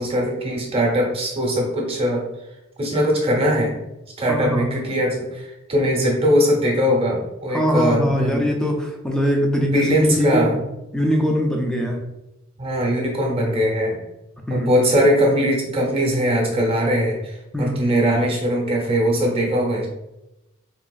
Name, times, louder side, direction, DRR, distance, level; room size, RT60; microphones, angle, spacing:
voice 1, 0.0-2.2 2.8-3.7 4.2-8.4 9.6-10.6 12.6-14.0 14.5-19.9, equal, 30° right, -2 dB, 0.7 m, -20 dB
voice 2, 4.3-4.7 7.5-9.8 10.1-10.6 10.9-12.0 14.5-14.7 17.5-17.8, equal, 5° left, 1 dB, 0.4 m, -21 dB
3.8 x 2.4 x 2.3 m, 0.93 s
head